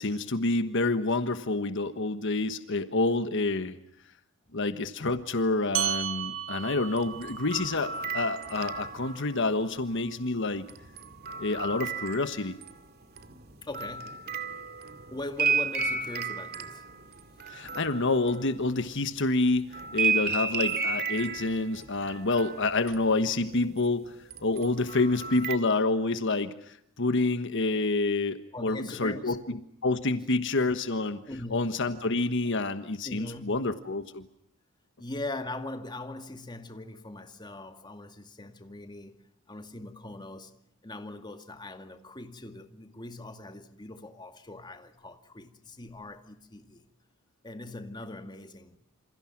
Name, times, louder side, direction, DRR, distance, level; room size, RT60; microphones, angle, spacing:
voice 1, 0.0-3.7 4.5-10.7 11.4-12.6 17.5-24.1 24.4-31.2 31.5-34.2, left 2 dB, 60° left, 1.4 m, -28 dB
sound 1, 5.7-10.6, right 11 dB, 70° right, 1.9 m, -36 dB
sound 2, 6.9-9.5 10.7-12.8 13.2-19.1 19.7-23.9 24.3-25.6, right 5 dB, 50° right, 2.5 m, -33 dB
voice 2, 13.6-14.2 15.1-16.8 28.5-29.4 31.3-32.0 33.0-33.6 35.0-39.1 39.5-40.5 40.8-46.8 47.4-48.8, left 2 dB, 20° left, 2.3 m, -41 dB
28.0 x 28.0 x 6.0 m
head